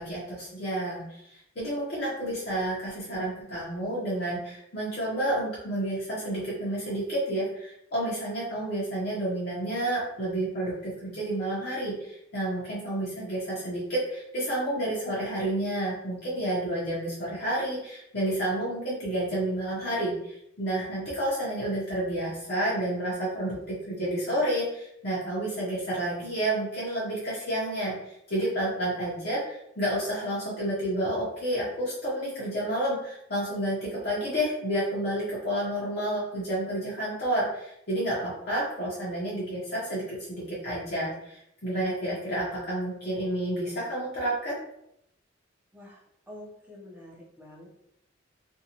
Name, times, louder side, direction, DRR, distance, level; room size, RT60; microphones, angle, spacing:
voice 1, 0.0-44.6, right 1 dB, 55° left, -8 dB, 0.7 m, -30 dB
voice 2, 46.3-47.7, left 1 dB, 10° right, -4 dB, 0.6 m, -46 dB
2.6 x 2.2 x 2.8 m, 0.79 s
head